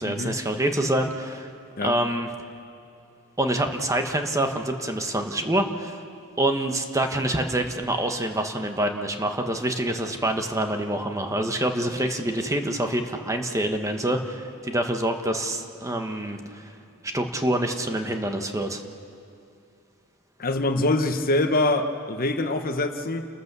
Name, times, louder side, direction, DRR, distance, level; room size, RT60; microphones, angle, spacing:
voice 1, 0.0-1.5 1.8-2.3 3.4-6.0 6.4-16.7 17.0-18.8, right 1 dB, 15° right, 5 dB, 1.2 m, -26 dB
voice 2, 20.4-23.3, left 2 dB, 40° left, 7 dB, 1.0 m, -24 dB
29.5 x 14.0 x 6.9 m, 2.6 s
head